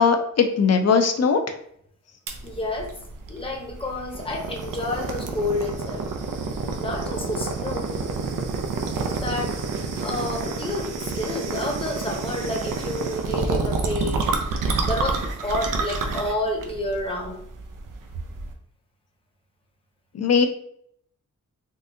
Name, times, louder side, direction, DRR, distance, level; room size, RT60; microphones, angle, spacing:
voice 1, 0.0-1.4 20.1-20.5, left 5 dB, 55° left, 7 dB, 0.5 m, -19 dB
sound 1, 2.3-18.5, right 4 dB, 90° right, 0.5 m, -29 dB
voice 2, 2.4-2.9 3.3-6.1 6.8-7.9 9.0-9.5 10.0-14.3 14.8-17.4, left 1 dB, 15° left, 1 dB, 0.7 m, -29 dB
3.7 x 2.6 x 2.6 m, 0.68 s
wide cardioid pair, 85°, 31 cm